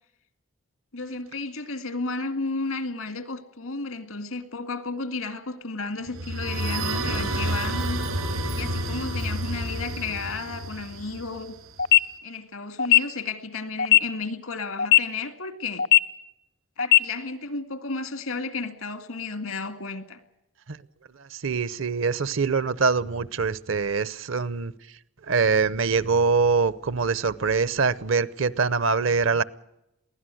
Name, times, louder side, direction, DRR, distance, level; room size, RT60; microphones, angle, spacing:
voice 1, 0.9-8.0 8.5-11.5 12.2-15.9 16.8-20.2, left 3 dB, 85° left, 2.2 m, -33 dB
sound 1, 6.1-11.8, right 1 dB, 90° right, 6.4 m, -29 dB
sound 2, 11.8-12.0 12.8-13.0 13.8-14.0 14.8-15.0 15.8-16.0 16.8-17.0, left 13 dB, 60° left, 0.7 m, -16 dB
voice 2, 21.3-24.7 25.3-29.4, right 4 dB, 65° right, 0.8 m, -24 dB
23.0 x 16.5 x 7.8 m
head